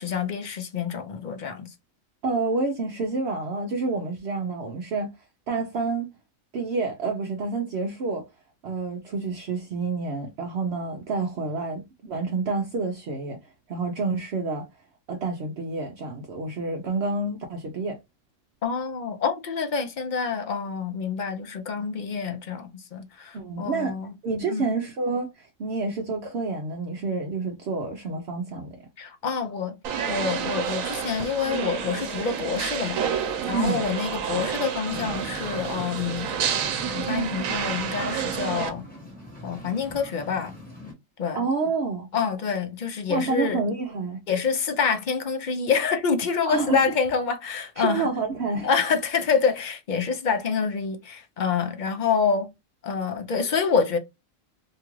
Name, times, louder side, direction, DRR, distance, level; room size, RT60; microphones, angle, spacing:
voice 1, 0.0-1.7 18.6-24.1 24.5-24.8 29.0-29.8 30.1-33.0 33.5-36.3 36.9-38.8 39.4-40.5 41.2-41.4 42.1-43.6 44.3-48.1 48.6-52.5 52.8-54.0, left 5 dB, 55° left, 0.5 m, -27 dB
voice 2, 2.2-5.1 5.5-6.1 6.5-8.2 8.6-13.4 13.7-14.7 15.1-18.0 23.3-23.9 24.2-28.8 33.5-33.8 41.3-42.1 43.1-44.2 46.5-46.8 47.8-48.7, right 3 dB, 60° right, 0.8 m, -28 dB
sound 1, 29.8-38.7, right 8 dB, 85° right, 1.1 m, -29 dB
sound 2, 34.8-40.9, left 1 dB, 5° left, 1.1 m, -42 dB
2.9 x 2.4 x 3.0 m
omnidirectional pair, 1.4 m